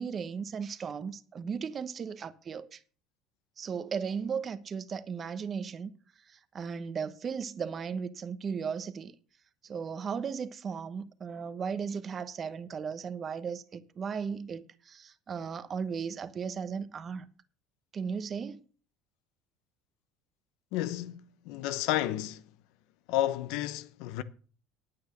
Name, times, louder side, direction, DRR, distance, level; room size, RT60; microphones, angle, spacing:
voice 1, 0.0-2.8 3.6-5.9 6.3-9.1 9.6-17.3 17.9-18.6, right 6 dB, 30° right, 1.1 m, -36 dB
voice 2, 20.7-22.4 23.1-24.2, left 13 dB, 70° left, 0.9 m, -31 dB
9.5 x 8.7 x 6.5 m
supercardioid pair, 120°, 0 cm